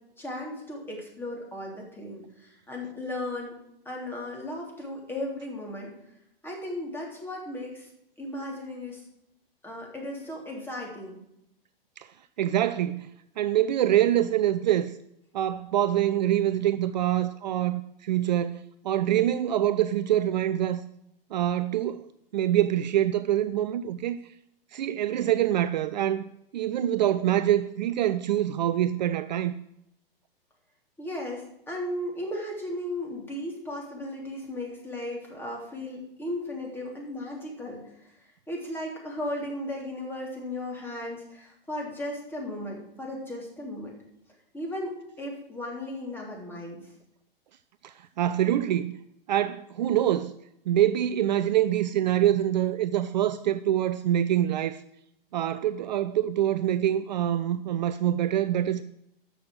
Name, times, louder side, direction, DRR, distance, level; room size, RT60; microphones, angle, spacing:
voice 1, 0.2-3.5 3.8-5.9 6.4-7.9 8.2-9.1 9.6-11.2 31.0-43.9 44.5-46.9, left 1 dB, 5° left, 3.3 m, -36 dB
voice 2, 12.4-13.1 13.4-15.0 15.3-20.8 21.3-22.0 22.3-24.2 24.7-26.2 26.5-29.5 47.8-49.0 49.3-50.3 50.7-54.8 55.3-58.8, right 12 dB, 50° right, 0.5 m, -25 dB
13.0 x 6.3 x 7.7 m
figure-of-eight pair, 110°, 29 cm